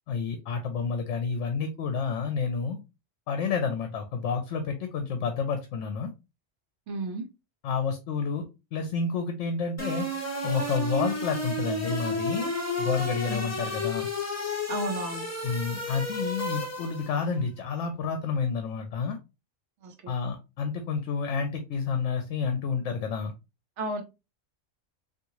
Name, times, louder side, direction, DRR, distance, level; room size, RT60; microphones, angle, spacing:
voice 1, 0.1-2.8 3.3-6.1 7.6-8.5 8.7-10.0 10.4-12.5 12.8-14.1 15.4-19.2 20.1-23.3, left 5 dB, 70° left, 6 dB, 0.9 m, -29 dB
voice 2, 6.9-7.3 13.3-13.5 14.7-15.3 19.8-20.1 23.8-24.0, right 2 dB, 70° right, 6 dB, 0.9 m, -33 dB
sound 1, 9.8-17.2, left 1 dB, 15° left, 0.6 m, -32 dB
3.6 x 2.5 x 3.0 m, 0.26 s
omnidirectional pair, 1.3 m